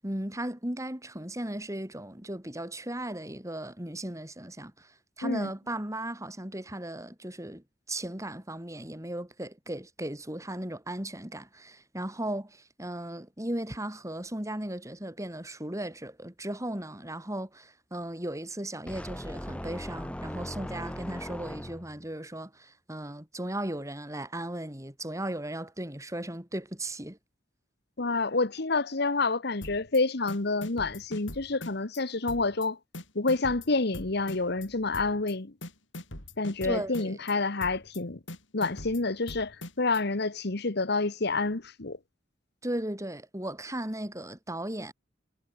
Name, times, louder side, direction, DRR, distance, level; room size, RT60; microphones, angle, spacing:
voice 1, 0.0-27.2 36.6-37.2 42.6-44.9, right 1 dB, 15° right, 4.0 m, -36 dB
sound 1, 18.9-22.1, equal, 5° left, 1.2 m, -39 dB
voice 2, 28.0-32.8 33.1-35.5 36.4-38.2 38.5-42.0, left 3 dB, 60° left, 1.4 m, -28 dB
sound 2, 29.6-30.0 30.3-32.0 32.3-32.7 32.9-34.7 34.9-35.3 35.6-37.3 37.6-38.0 38.3-40.0, left 1 dB, 90° left, 6.1 m, -42 dB
head